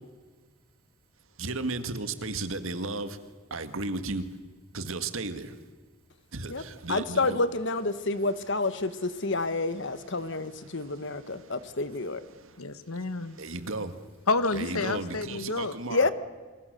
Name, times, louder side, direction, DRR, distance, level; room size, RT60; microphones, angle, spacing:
voice 1, 1.4-3.2 3.5-4.3 4.7-5.6 6.3-7.4 10.7-11.0 11.4-11.5 12.3-12.6 13.3-13.9 14.5-16.1, right 3 dB, 70° right, 10 dB, 1.9 m, -34 dB
voice 2, 6.9-12.2 15.9-16.1, left 3 dB, 55° left, 12 dB, 1.4 m, -29 dB
voice 3, 12.6-13.4 14.3-15.7, left 3 dB, 90° left, 13 dB, 1.4 m, -29 dB
28.0 x 26.5 x 6.8 m, 1.4 s
head